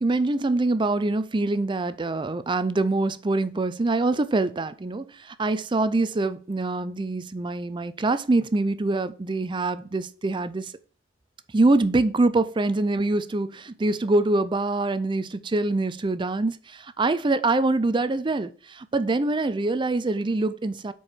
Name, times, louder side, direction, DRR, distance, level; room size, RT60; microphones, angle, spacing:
voice 1, 0.0-10.7 11.5-20.9, right 2 dB, 25° right, 0.5 m, -24 dB
7.7 x 4.7 x 4.2 m
head